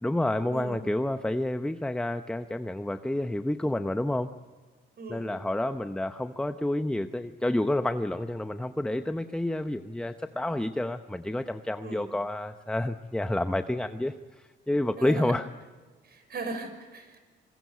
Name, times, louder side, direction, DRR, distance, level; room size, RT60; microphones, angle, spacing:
voice 1, 0.0-4.3 5.1-15.5, left 1 dB, 5° left, 9 dB, 0.8 m, -29 dB
voice 2, 5.0-5.3 11.8-12.1 15.0-15.3 16.0-17.2, right 3 dB, 55° right, 8 dB, 5.8 m, -38 dB
25.5 x 21.5 x 8.2 m, 1.3 s
cardioid pair, 90°, 20 cm